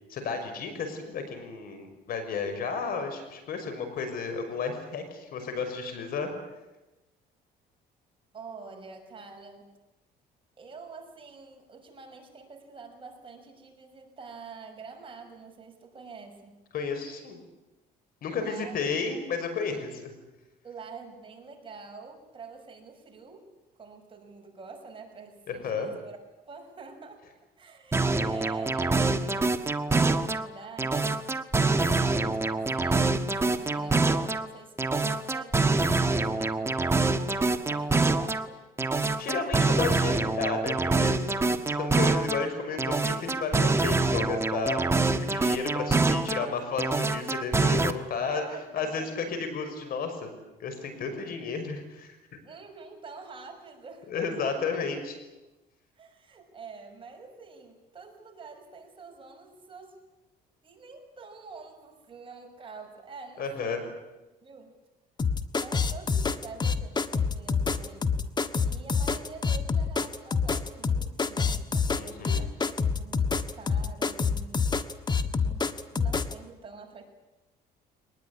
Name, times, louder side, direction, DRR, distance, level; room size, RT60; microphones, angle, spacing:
voice 1, 0.1-6.3 16.7-17.4 18.2-20.1 25.5-25.9 39.2-41.3 41.7-44.8 45.1-48.4 48.7-50.3 50.6-52.1 54.1-55.2 63.4-63.8 71.9-72.5, left 5 dB, 60° left, 7 dB, 6.0 m, -32 dB
voice 2, 8.3-9.7 10.6-16.6 18.3-18.7 20.6-23.5 23.8-27.2 27.6-31.2 31.7-38.6 48.2-49.1 52.4-54.5 56.0-60.0 60.6-63.9 64.4-64.8 65.5-68.2 68.6-75.0 75.3-77.0, right 4 dB, 30° right, 3 dB, 6.0 m, -47 dB
sound 1, 27.9-30.5 30.8-34.5 34.8-38.5 38.8-42.5 42.8-46.5 46.8-47.9, right 3 dB, 15° right, 1.4 m, -25 dB
sound 2, 65.2-76.3, left 5 dB, 25° left, 1.5 m, -26 dB
23.0 x 20.0 x 9.9 m, 1.0 s
cardioid pair, 110°, 17 cm